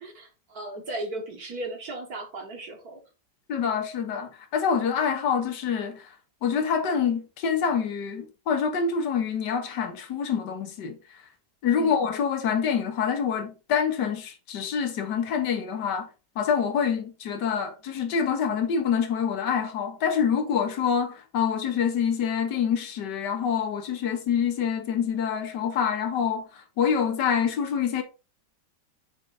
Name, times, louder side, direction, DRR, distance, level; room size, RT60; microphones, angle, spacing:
voice 1, 0.0-3.0 11.8-12.0, right 2 dB, 60° right, 2.1 m, -36 dB
voice 2, 3.5-6.0 6.4-11.0 11.6-16.1 16.3-26.4 26.8-28.0, left 7 dB, 75° left, 1.8 m, -26 dB
6.8 x 4.6 x 4.2 m
omnidirectional pair, 1.9 m